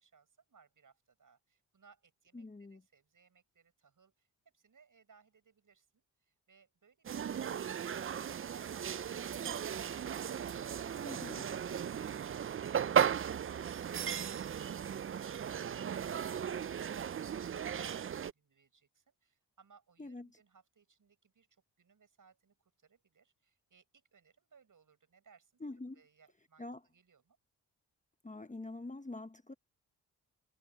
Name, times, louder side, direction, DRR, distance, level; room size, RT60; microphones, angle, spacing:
voice 1, 0.0-4.3 4.5-25.6 25.9-27.4, right 5 dB, 55° right, 7.7 m, -66 dB
voice 2, 2.3-2.8 11.0-11.5 20.0-20.3 25.6-26.0 26.6-26.8 28.2-29.5, left 2 dB, 20° left, 1.3 m, -45 dB
sound 1, 7.0-18.3, right 8 dB, 35° right, 0.5 m, -36 dB
supercardioid pair, 55°, 37 cm